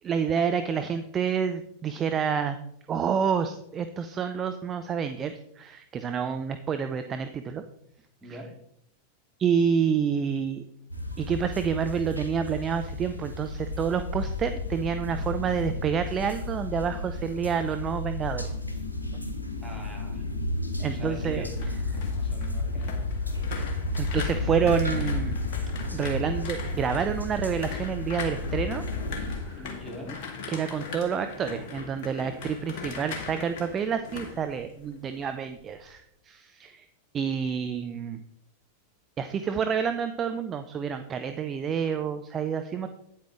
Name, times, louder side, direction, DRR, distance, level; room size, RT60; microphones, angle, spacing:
voice 1, 0.0-2.6 2.9-7.6 8.3-8.4 9.4-10.6 11.2-18.5 20.8-21.5 21.9-22.0 24.0-25.4 25.9-28.8 29.2-29.7 30.5-36.9 37.1-38.2 39.2-42.9, right 7 dB, 25° right, 9 dB, 0.6 m, -28 dB
sound 1, 10.9-29.4, left 2 dB, 85° left, 1.3 m, -32 dB
voice 2, 19.6-20.3 20.8-21.5 21.9-23.0 23.5-23.9 29.5-30.2, right 1 dB, 5° right, -2 dB, 3.1 m, -43 dB
sound 2, 21.2-35.2 35.5-35.9, left 5 dB, 50° left, 1.9 m, -40 dB
9.4 x 8.6 x 3.7 m, 0.76 s
figure-of-eight pair, 90°, 0 cm